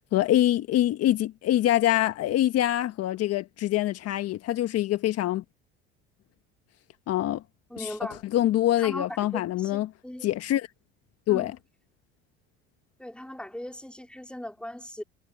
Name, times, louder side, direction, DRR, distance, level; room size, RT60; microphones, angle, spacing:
voice 1, 0.1-5.4 7.1-7.4 7.8-7.9 8.3-9.9 10.2-10.7 11.3-11.5, left 13 dB, 55° left, 1.6 m, -24 dB
voice 2, 7.7-8.2 8.8-10.3 11.3-11.5 13.0-15.0, left 1 dB, 5° left, 4.4 m, -39 dB
supercardioid pair, 80°, 29 cm